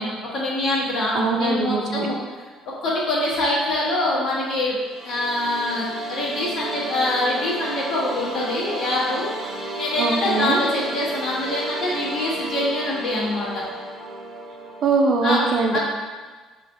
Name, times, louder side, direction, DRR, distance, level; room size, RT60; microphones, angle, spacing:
voice 1, 0.0-2.2 2.8-4.7 5.0-9.3 9.8-13.5 15.2-15.4 15.7-15.8, left 1 dB, 50° left, -5 dB, 1.2 m, -24 dB
voice 2, 1.1-2.1 10.0-10.6 14.8-15.8, right 4 dB, 50° right, 2 dB, 0.6 m, -22 dB
sound 1, 4.7-14.9, right 1 dB, 30° right, 1.1 m, -33 dB
5.7 x 3.1 x 2.6 m, 1.4 s
cardioid pair, 140°, 0 cm